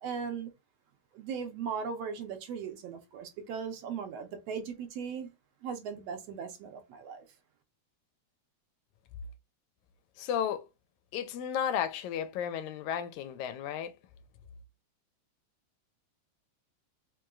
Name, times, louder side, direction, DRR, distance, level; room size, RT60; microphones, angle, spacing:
voice 1, 0.0-0.5 1.1-5.3 5.6-7.2, right 6 dB, 75° right, 1.6 m, -38 dB
voice 2, 10.2-10.6 11.1-14.0, left 9 dB, 80° left, 1.9 m, -33 dB
5.0 x 3.0 x 2.3 m
omnidirectional pair, 3.4 m